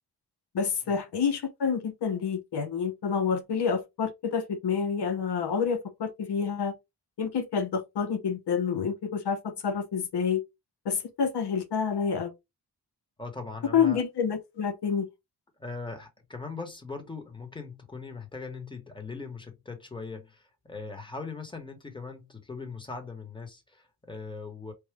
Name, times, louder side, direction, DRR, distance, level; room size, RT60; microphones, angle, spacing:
voice 1, 0.5-6.8 7.2-10.4 10.9-12.3 13.7-15.1, left 6 dB, 80° left, 0.7 m, -28 dB
voice 2, 13.2-14.0 15.6-24.7, left 4 dB, 10° left, 1.0 m, -40 dB
4.6 x 2.1 x 3.2 m
wide cardioid pair, 135°, 40 cm